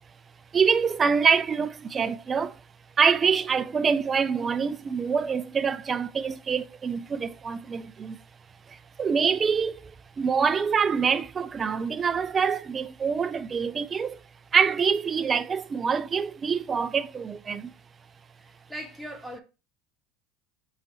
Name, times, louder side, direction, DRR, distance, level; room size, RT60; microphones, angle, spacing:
voice 1, 0.5-2.6 3.0-8.2 8.7-9.9 10.2-14.2 14.5-17.7, right 6 dB, 25° right, 0.3 m, -25 dB
voice 2, 18.4-19.4, equal, ahead, 1.3 m, -39 dB
4.9 x 3.7 x 2.7 m
supercardioid pair, 110°, 0 cm